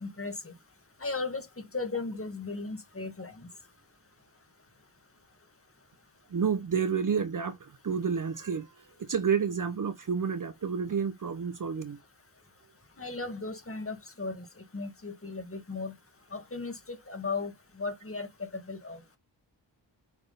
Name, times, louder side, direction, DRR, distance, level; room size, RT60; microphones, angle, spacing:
voice 1, 0.0-0.5 1.0-1.5 1.7-3.3 13.0-14.4 14.7-15.9 16.3-17.5 17.8-19.0, left 3 dB, 30° left, 1.7 m, -36 dB
voice 2, 6.3-12.0, right 6 dB, 40° right, 0.7 m, -30 dB
7.2 x 3.6 x 3.9 m
cardioid pair, 60°, 47 cm